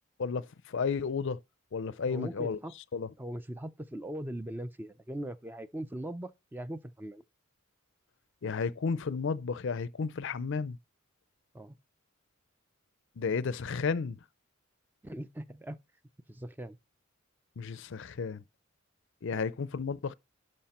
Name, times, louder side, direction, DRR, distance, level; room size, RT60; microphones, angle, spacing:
voice 1, 0.2-1.4 1.7-2.6 2.9-3.1 8.4-10.8 13.2-14.2 17.6-18.4 19.2-20.1, left 5 dB, 60° left, 0.5 m, -32 dB
voice 2, 2.0-2.8 3.2-7.2 11.5-11.7 15.0-15.8 16.3-16.8 19.3-19.4, right 1 dB, 10° right, 0.4 m, -40 dB
11.5 x 5.4 x 4.2 m
head